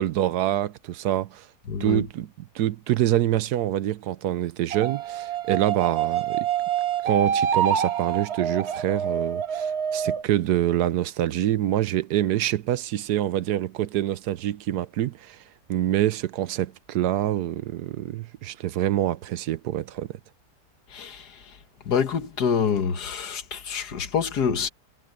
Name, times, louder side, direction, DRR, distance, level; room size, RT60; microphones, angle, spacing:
voice 1, 0.0-1.4 1.8-2.3 2.5-6.5 7.0-15.4 15.7-20.2, right 12 dB, 80° right, 1.2 m, -26 dB
voice 2, 1.7-2.0 20.9-21.6 21.8-24.7, left 6 dB, 75° left, 1.9 m, -26 dB
sound 1, 4.7-10.2, right 8 dB, 45° right, 1.1 m, -26 dB
omnidirectional pair, 1.7 m